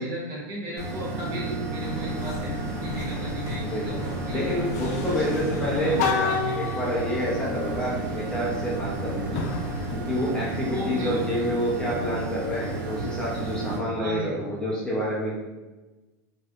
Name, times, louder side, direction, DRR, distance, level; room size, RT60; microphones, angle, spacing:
voice 1, 0.0-4.6 5.1-5.2 5.5-6.8 10.7-11.3 14.0-14.4, equal, 35° right, -4 dB, 1.0 m, -36 dB
sound 1, 0.8-13.8, right 3 dB, 80° right, 0.7 m, -32 dB
sound 2, 1.8-10.0, left 5 dB, 65° left, 0.4 m, -33 dB
voice 2, 3.6-3.9 4.3-9.4 9.9-15.4, equal, 10° left, -7 dB, 0.6 m, -28 dB
3.1 x 2.7 x 2.4 m, 1.1 s
supercardioid pair, 145°, 9 cm